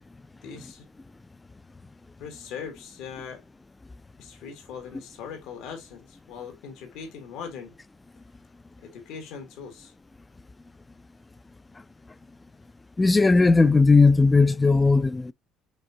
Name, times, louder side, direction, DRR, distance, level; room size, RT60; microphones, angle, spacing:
voice 1, 0.4-0.9 2.2-3.4 4.2-7.7 8.8-9.9, left 6 dB, 80° left, 1.8 m, -40 dB
voice 2, 13.0-15.3, left 3 dB, 15° left, 0.3 m, -17 dB
5.2 x 3.6 x 2.7 m
cardioid pair, 110°, 0 cm